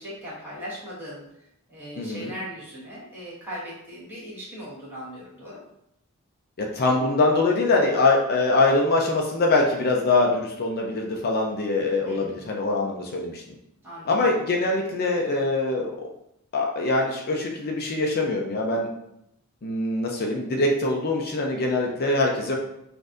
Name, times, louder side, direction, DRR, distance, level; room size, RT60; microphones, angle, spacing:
voice 1, 0.0-5.6 12.0-12.4 13.8-14.3 21.7-21.8, equal, 10° right, -9 dB, 1.5 m, -39 dB
voice 2, 2.0-2.3 6.6-13.4 14.1-15.9 16.5-18.9 19.6-22.6, left 2 dB, 45° left, 0 dB, 0.5 m, -23 dB
6.2 x 2.6 x 2.5 m, 0.80 s
head